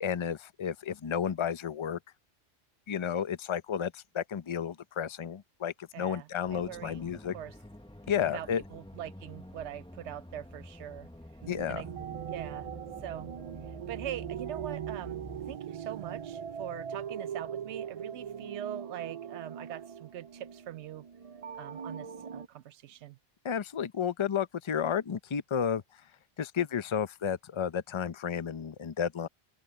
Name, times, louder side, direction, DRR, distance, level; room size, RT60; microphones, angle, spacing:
voice 1, 0.0-2.0 2.9-7.3 8.1-8.6 11.5-11.8 23.4-25.8 26.4-29.3, left 8 dB, 35° left, 0.6 m, -32 dB
voice 2, 5.9-7.0 7.3-7.5 8.2-11.1 11.7-11.9 12.3-12.7 13.0-13.3 13.9-21.0 21.5-23.2, right 11 dB, 90° right, 0.9 m, -42 dB
sound 1, 6.4-15.6, left 1 dB, 5° left, 0.9 m, -49 dB
sound 2, 11.4-22.5, right 8 dB, 50° right, 0.4 m, -41 dB
open air
omnidirectional pair, 1.1 m